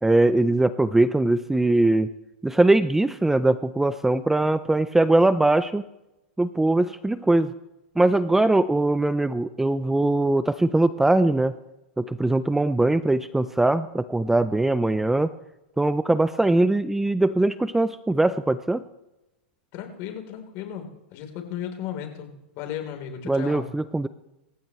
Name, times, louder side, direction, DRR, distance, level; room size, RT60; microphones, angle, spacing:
voice 1, 0.0-2.1 2.4-5.8 6.4-7.5 8.0-11.5 12.0-15.3 15.8-18.8 23.3-24.1, right 2 dB, 5° right, 14 dB, 0.5 m, -21 dB
voice 2, 19.7-23.7, left 9 dB, 45° left, 4 dB, 3.6 m, -35 dB
26.5 x 15.0 x 3.2 m, 0.95 s
hypercardioid pair, 125°, 6 cm